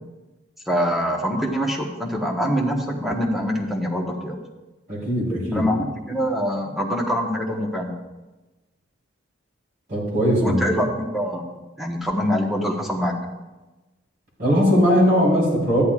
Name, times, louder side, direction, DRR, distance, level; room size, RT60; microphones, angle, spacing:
voice 1, 0.7-4.4 5.5-8.0 10.4-11.4 11.8-13.2, equal, ahead, 0 dB, 1.1 m, -24 dB
voice 2, 4.9-5.7 9.9-10.8 14.4-15.8, equal, 50° right, -4 dB, 3.8 m, -19 dB
13.0 x 10.5 x 2.4 m, 1.1 s
head